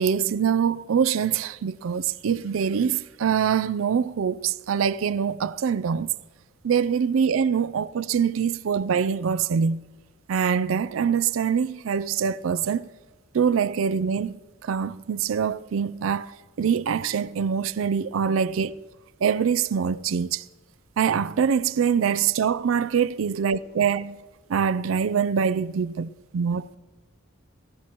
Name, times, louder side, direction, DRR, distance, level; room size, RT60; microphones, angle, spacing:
voice 1, 0.0-6.1 6.6-9.8 10.3-12.9 13.3-14.4 14.6-18.8 19.2-20.4 21.0-24.2 24.5-26.8, right 7 dB, 85° right, 0.4 m, -24 dB
18.0 x 15.5 x 3.0 m
head